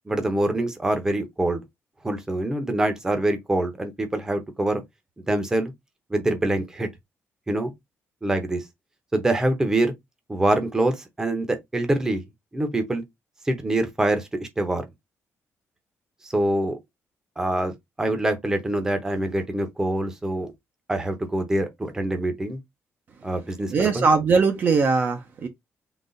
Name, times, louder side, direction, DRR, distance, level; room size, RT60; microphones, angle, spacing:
voice 1, 0.1-1.6 2.0-4.8 5.3-5.7 6.1-6.9 7.5-7.7 8.2-8.6 9.1-9.9 10.3-12.2 12.5-13.0 13.5-14.9 16.2-16.8 17.4-20.5 20.9-22.6 23.2-24.0, right 1 dB, 10° right, 0.8 m, -25 dB
voice 2, 23.7-25.5, right 4 dB, 40° right, 0.6 m, -20 dB
4.0 x 2.4 x 3.8 m
cardioid pair, 175°, 5 cm